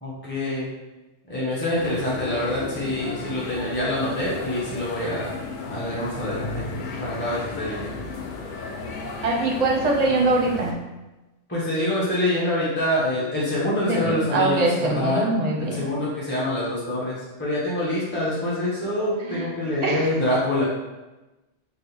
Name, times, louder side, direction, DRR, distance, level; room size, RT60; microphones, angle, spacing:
voice 1, 0.0-0.7 1.3-5.3 5.7-6.7 7.0-8.0 11.5-15.2 15.6-20.6, left 1 dB, 10° left, -8 dB, 0.8 m, -26 dB
sound 1, 1.8-10.7, left 3 dB, 55° left, 0.6 m, -34 dB
voice 2, 9.2-10.8 13.9-15.9 19.2-19.5 19.8-20.1, right 2 dB, 45° right, -1 dB, 0.6 m, -23 dB
4.0 x 2.4 x 4.2 m, 1.1 s
omnidirectional pair, 1.2 m